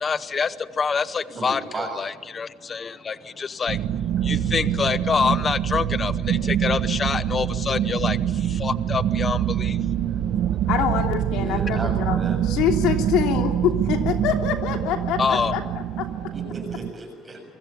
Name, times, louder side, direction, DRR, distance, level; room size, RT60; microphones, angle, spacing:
voice 1, 0.0-3.8 4.2-8.2 8.5-9.8 15.2-15.6, left 5 dB, 20° left, 15 dB, 0.8 m, -26 dB
voice 2, 1.3-2.0 11.3-12.4 16.3-17.4, right 2 dB, 15° right, 3 dB, 7.0 m, -34 dB
sound 1, 3.7-16.9, right 10 dB, 45° right, 1.3 m, -25 dB
voice 3, 10.7-12.2 12.4-13.5 13.9-15.6 16.0-16.1, left 8 dB, 65° left, 4 dB, 3.1 m, -25 dB
29.0 x 23.5 x 7.1 m, 1.3 s
cardioid pair, 175°, 0 cm